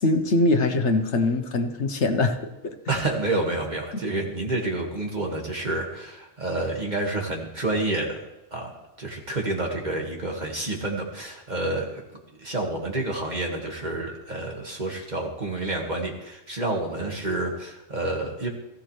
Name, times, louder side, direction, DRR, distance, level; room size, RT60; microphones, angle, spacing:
voice 1, 0.0-2.4 2.6-2.7, left 2 dB, 75° left, 7 dB, 1.3 m, -22 dB
voice 2, 2.9-8.2 8.5-12.0 12.4-18.5, right 2 dB, 40° right, 0 dB, 2.2 m, -29 dB
18.0 x 15.0 x 3.3 m, 0.96 s
omnidirectional pair, 1.2 m